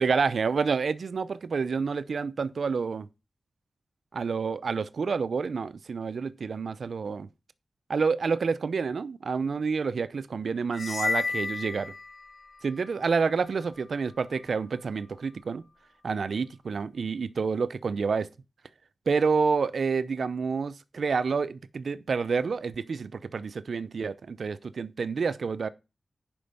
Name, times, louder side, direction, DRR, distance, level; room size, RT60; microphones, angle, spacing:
voice 1, 0.0-3.1 4.1-7.3 7.9-11.9 12.6-15.6 16.0-18.3 19.1-25.7, right 5 dB, 75° right, 0.6 m, -28 dB
sound 1, 10.7-12.6, left 4 dB, 70° left, 0.7 m, -31 dB
10.0 x 5.3 x 5.4 m
wide cardioid pair, 70°, 0 cm